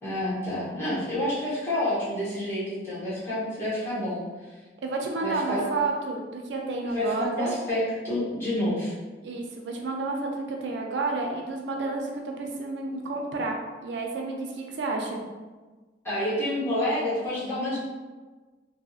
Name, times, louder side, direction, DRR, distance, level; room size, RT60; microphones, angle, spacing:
voice 1, 0.0-4.6 5.2-5.7 6.9-8.9 16.0-17.8, left 1 dB, 15° left, -11 dB, 1.0 m, -29 dB
voice 2, 4.8-7.5 9.2-15.2, right 3 dB, 70° right, 1 dB, 0.4 m, -30 dB
2.7 x 2.5 x 2.4 m, 1.3 s
head